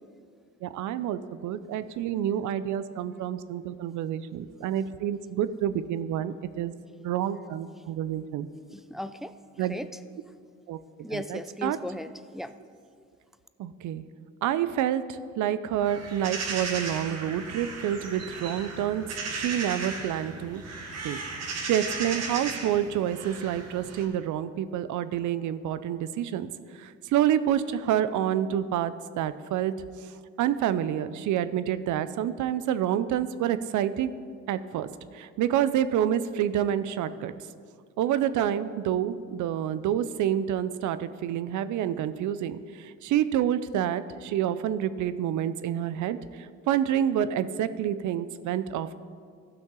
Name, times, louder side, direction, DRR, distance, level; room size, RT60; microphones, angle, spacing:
voice 1, 0.6-6.7 7.0-8.5 9.6-9.7 10.7-10.8 11.1-11.8 13.6-14.0 14.4-15.0 15.4-20.6 21.0-21.2 21.6-26.5 26.8-29.7 30.4-34.1 34.5-34.9 35.1-37.3 38.0-42.6 43.0-46.2 46.7-49.0, right 10 dB, 75° right, 13 dB, 0.5 m, -28 dB
voice 2, 8.7-9.3 9.7-9.9 11.0-12.5, left 1 dB, ahead, 11 dB, 0.3 m, -36 dB
sound 1, 15.8-24.0, right 4 dB, 60° right, 1.4 m, -36 dB
15.0 x 6.1 x 3.8 m, 2.1 s
cardioid pair, 90°, 30 cm